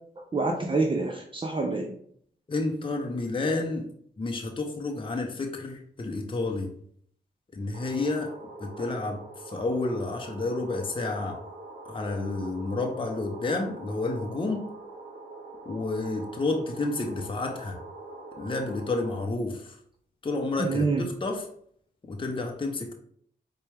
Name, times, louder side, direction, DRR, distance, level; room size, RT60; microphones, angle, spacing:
voice 1, 0.2-1.9 8.8-8.9 20.6-21.0, right 3 dB, 25° right, 2 dB, 0.5 m, -27 dB
voice 2, 2.5-3.9 4.2-6.7 7.5-8.3 8.6-11.4 11.9-14.6 15.7-17.8 18.4-19.8 20.2-21.5 22.1-22.9, left 2 dB, 25° left, 2 dB, 0.6 m, -30 dB
sound 1, 7.7-19.2, right 2 dB, 60° right, 0.9 m, -44 dB
4.2 x 2.2 x 3.4 m, 0.64 s
supercardioid pair, 45°, 19 cm